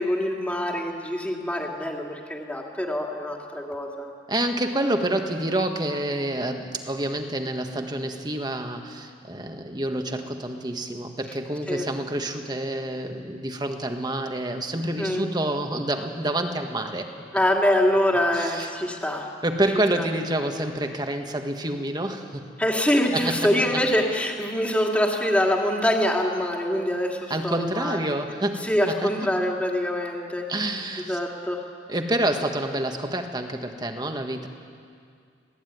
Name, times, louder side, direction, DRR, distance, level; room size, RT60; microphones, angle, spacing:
voice 1, 0.0-4.1 11.7-11.9 15.0-15.2 17.3-19.3 20.0-20.1 22.6-28.0 28.6-30.5 31.1-31.6, left 1 dB, 5° left, 0 dB, 2.4 m, -24 dB
voice 2, 4.3-17.1 18.3-18.7 19.4-22.4 23.1-23.8 27.3-29.5 30.5-31.2 31.9-34.5, right 1 dB, 20° right, 5 dB, 1.6 m, -28 dB
25.5 x 17.5 x 9.4 m, 2.3 s
head